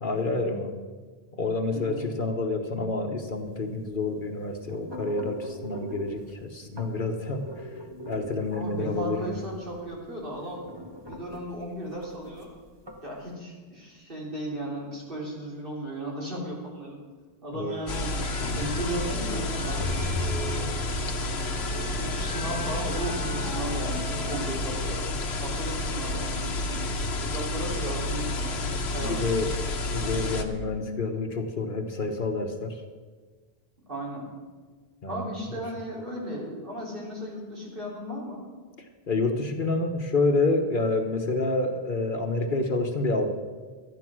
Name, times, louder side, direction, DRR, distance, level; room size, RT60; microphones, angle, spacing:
voice 1, 0.0-0.8 1.3-7.7 8.1-9.4 17.5-17.7 29.0-29.5 29.9-32.8 35.0-35.6 39.1-43.3, left 3 dB, 55° left, 4 dB, 1.2 m, -28 dB
voice 2, 1.7-2.0 8.5-10.6 11.1-12.5 13.0-17.0 17.4-18.1 18.5-20.0 20.2-20.7 21.8-25.1 25.4-28.5 28.9-29.2 33.9-34.3 35.1-38.4, right 1 dB, 55° right, -4 dB, 3.6 m, -35 dB
sound 1, 3.3-13.3, equal, 25° right, 1.4 m, -43 dB
sound 2, 17.7-24.5, equal, 5° right, 2.0 m, -41 dB
sound 3, 17.9-30.4, left 2 dB, 80° left, 1.2 m, -30 dB
12.5 x 9.8 x 6.1 m, 1.4 s
omnidirectional pair, 1.1 m